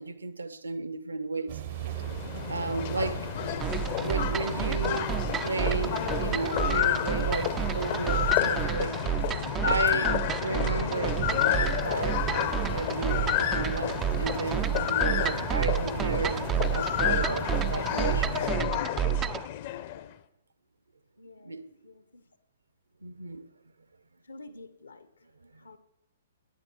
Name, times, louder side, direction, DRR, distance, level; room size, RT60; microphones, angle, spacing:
voice 1, 0.0-1.6 2.5-3.3 4.0-5.1 5.4-18.3 21.4-21.6 23.0-23.5 25.5-25.8, right 3 dB, 75° right, 0.9 m, -34 dB
sound 1, 1.5-18.5, right 12 dB, 45° right, 0.7 m, -40 dB
sound 2, 1.7-20.1, left 12 dB, 40° left, 0.8 m, -30 dB
sound 3, 3.6-19.5, right 10 dB, 20° right, 0.4 m, -31 dB
voice 2, 21.2-22.3 24.2-25.1 25.6-25.8, left 2 dB, 70° left, 1.2 m, -49 dB
18.0 x 9.8 x 4.7 m
figure-of-eight pair, 115°, 0 cm